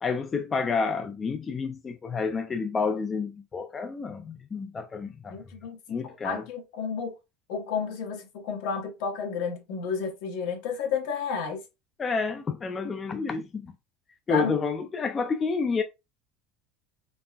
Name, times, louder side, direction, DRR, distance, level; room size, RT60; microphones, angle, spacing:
voice 1, 0.0-5.4 5.9-6.4 12.0-13.7 14.3-15.8, left 4 dB, 20° left, 0.4 m, -29 dB
voice 2, 5.3-7.1 7.5-11.6 14.3-14.6, left 6 dB, 70° left, 1.3 m, -31 dB
3.9 x 3.7 x 2.3 m
cardioid pair, 155°, 0 cm